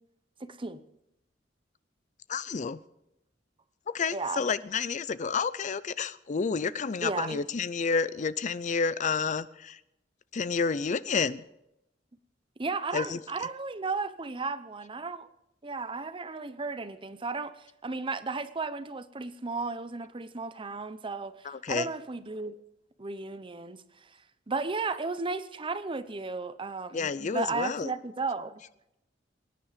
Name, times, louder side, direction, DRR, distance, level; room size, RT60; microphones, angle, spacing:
voice 1, 0.4-0.8 4.1-4.4 7.0-7.4 12.6-15.3 15.6-22.6 23.0-23.8 24.5-28.6, right 3 dB, 30° right, 0.8 m, -34 dB
voice 2, 2.3-2.8 3.9-9.8 10.3-11.4 12.9-13.2 21.4-21.9 26.9-27.9, left 5 dB, 40° left, 0.5 m, -30 dB
23.5 x 9.8 x 5.1 m
head